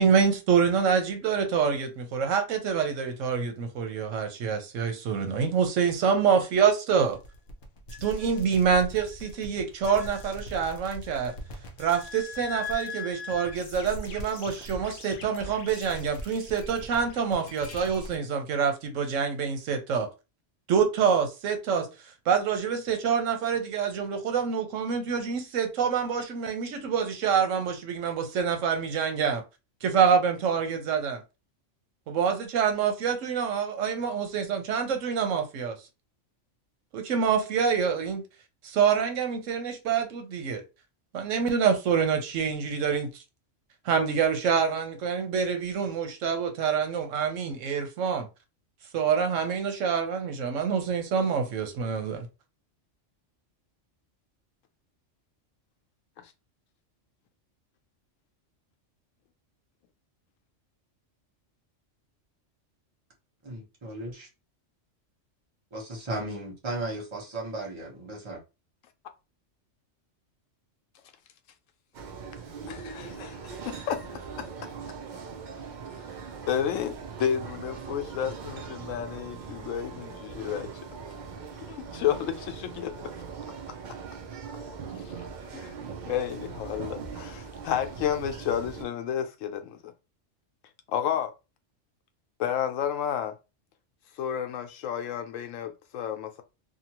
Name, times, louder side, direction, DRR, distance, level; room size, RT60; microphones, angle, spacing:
voice 1, 0.0-7.2 8.0-11.3 11.8-20.1 20.7-21.9 22.3-29.4 29.8-31.2 32.1-35.8 36.9-38.2 38.6-40.6 41.1-43.1 43.8-48.3 48.9-52.3, right 6 dB, 85° right, 1.1 m, -26 dB
sound 1, 7.1-18.2, left 2 dB, 55° left, 0.7 m, -40 dB
voice 2, 63.4-64.3 65.7-68.4, right 2 dB, 25° right, 1.0 m, -35 dB
sound 2, 71.9-88.9, right 5 dB, 60° right, 0.5 m, -41 dB
voice 3, 72.7-74.5 76.4-80.7 81.7-82.9 83.5-83.6 85.0-85.3 85.5-85.7 86.1-89.9 90.9-91.3 92.4-93.4 94.2-96.4, left 9 dB, 85° left, 0.9 m, -31 dB
2.8 x 2.3 x 2.9 m
omnidirectional pair, 1.3 m